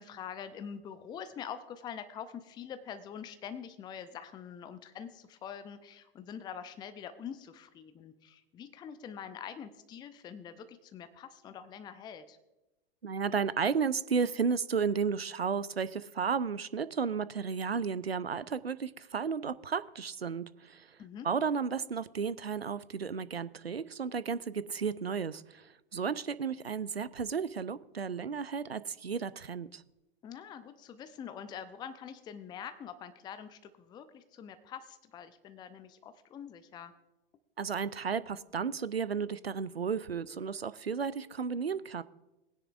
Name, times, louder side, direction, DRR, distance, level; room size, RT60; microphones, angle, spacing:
voice 1, 0.0-12.4 21.0-21.3 30.2-37.0, left 8 dB, 15° left, 0.5 m, -45 dB
voice 2, 13.0-20.9 21.2-29.8 37.6-42.0, right 6 dB, 85° right, 0.5 m, -33 dB
19.0 x 9.9 x 2.5 m
figure-of-eight pair, 95°, 30 cm